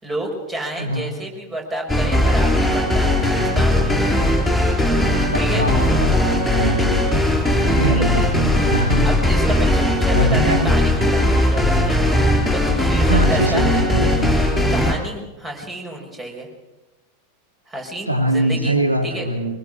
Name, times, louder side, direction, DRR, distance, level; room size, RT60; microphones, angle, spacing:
voice 1, 0.0-4.4 5.4-5.7 7.8-8.1 9.0-12.0 12.5-13.6 14.7-16.5 17.7-18.8 19.0-19.3, right 1 dB, 15° right, 2 dB, 5.7 m, -30 dB
voice 2, 0.8-1.1 5.2-7.0 7.7-9.1 10.1-10.8 13.1-14.3 18.1-19.6, right 1 dB, 85° right, 5 dB, 2.0 m, -22 dB
sound 1, 1.9-14.9, left 1 dB, ahead, 4.4 m, -18 dB
23.5 x 20.5 x 6.4 m, 1.1 s
figure-of-eight pair, 90°, 0 cm